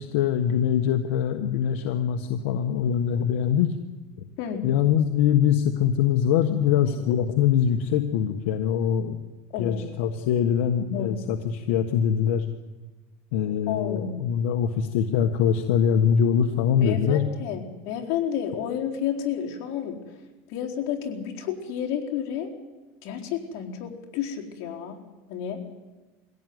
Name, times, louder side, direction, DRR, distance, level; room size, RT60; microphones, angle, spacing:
voice 1, 0.0-3.7 4.6-9.2 9.6-12.5 13.3-17.2, left 8 dB, 80° left, 5 dB, 1.5 m, -23 dB
voice 2, 9.5-10.0 10.9-11.2 13.7-14.2 16.8-19.9 20.5-22.5 23.0-25.0 25.3-25.6, left 9 dB, 55° left, 0 dB, 4.2 m, -31 dB
23.0 x 16.5 x 9.6 m, 1.2 s
supercardioid pair, 135°, 7 cm